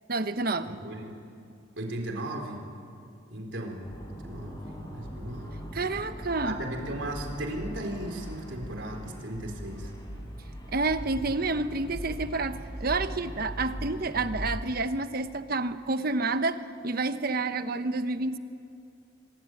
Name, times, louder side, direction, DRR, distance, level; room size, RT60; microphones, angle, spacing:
voice 1, 0.1-0.8 5.7-6.6 10.7-18.4, right 3 dB, 55° right, 10 dB, 1.1 m, -29 dB
voice 2, 0.7-1.1 1.8-2.6 3.3-5.7 6.4-9.9, right 1 dB, 75° right, 3 dB, 4.2 m, -36 dB
sound 1, 3.8-14.6, equal, 25° left, 4.7 m, -40 dB
24.5 x 22.5 x 9.2 m, 2.5 s
head